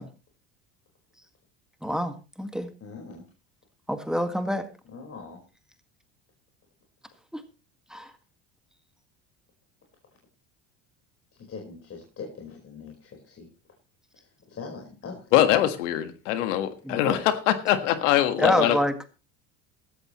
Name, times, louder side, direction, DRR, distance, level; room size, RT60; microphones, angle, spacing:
voice 1, 1.8-2.7 3.9-4.7 7.3-7.4 7.9-8.1 16.8-17.2 18.4-19.1, equal, ahead, 8 dB, 1.8 m, -27 dB
voice 2, 2.8-3.2 4.8-5.4 11.3-13.5 14.1-15.4, left 4 dB, 40° left, 0 dB, 4.7 m, -42 dB
voice 3, 15.3-18.8, left 12 dB, 85° left, 10 dB, 1.7 m, -23 dB
16.0 x 13.5 x 3.1 m, 0.31 s
supercardioid pair, 95°, 36 cm